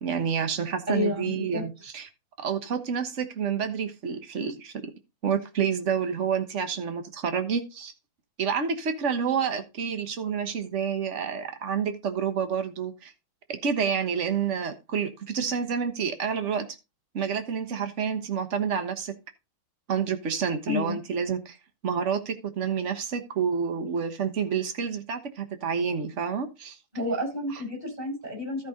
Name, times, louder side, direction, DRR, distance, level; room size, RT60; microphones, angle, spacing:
voice 1, 0.0-2.1 2.4-4.7 5.2-7.9 8.4-13.1 13.6-16.7 17.1-19.1 19.9-21.6 21.8-26.8, right 7 dB, 40° right, 8 dB, 1.4 m, -29 dB
voice 2, 0.9-1.6 20.7-21.0 26.9-28.7, left 2 dB, 20° right, 1 dB, 5.6 m, -30 dB
13.5 x 5.5 x 3.8 m, 0.27 s
omnidirectional pair, 2.3 m